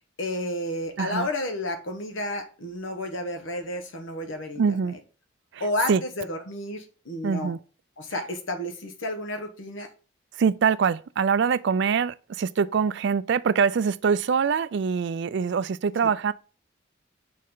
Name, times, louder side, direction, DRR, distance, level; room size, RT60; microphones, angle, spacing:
voice 1, 0.2-4.6 5.6-7.5 8.0-9.9 16.0-16.1, left 1 dB, 65° left, 1.3 m, -31 dB
voice 2, 1.0-1.3 4.6-5.0 5.5-6.0 7.2-7.6 10.3-16.3, right 6 dB, 55° right, 0.3 m, -24 dB
6.5 x 4.2 x 3.8 m
head